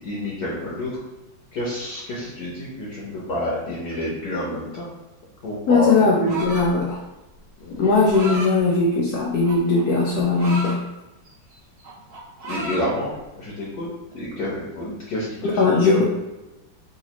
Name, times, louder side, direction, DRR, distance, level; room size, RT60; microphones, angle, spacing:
voice 1, 0.0-0.9 1.5-4.9 5.4-5.9 6.2-6.3 7.6-7.8 12.5-13.1 13.4-13.9 14.1-16.0, left 1 dB, 65° left, -5 dB, 1.1 m, -28 dB
voice 2, 5.7-7.0 7.8-10.8 15.4-16.0, left 3 dB, 85° left, -3 dB, 0.8 m, -19 dB
sound 1, 6.2-6.8 7.8-8.5 9.4-10.8 11.3-11.5 11.8-12.9, right 1 dB, 60° right, 1.2 m, -32 dB
4.0 x 2.4 x 2.8 m, 1.0 s
omnidirectional pair, 2.2 m